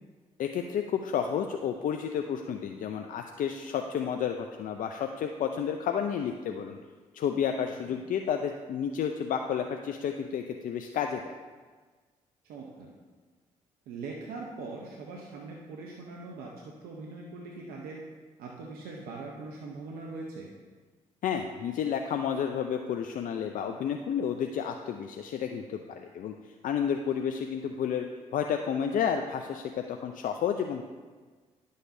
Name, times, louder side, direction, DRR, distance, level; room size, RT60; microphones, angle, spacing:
voice 1, 0.4-6.8 7.1-11.4 21.2-26.3 26.6-28.1 28.3-30.8, left 8 dB, 65° left, 4 dB, 0.5 m, -31 dB
voice 2, 12.5-12.9 13.9-18.0 18.4-20.5, right 3 dB, 80° right, -1 dB, 0.8 m, -41 dB
11.0 x 6.6 x 2.7 m, 1.4 s
supercardioid pair, 55°, 15 cm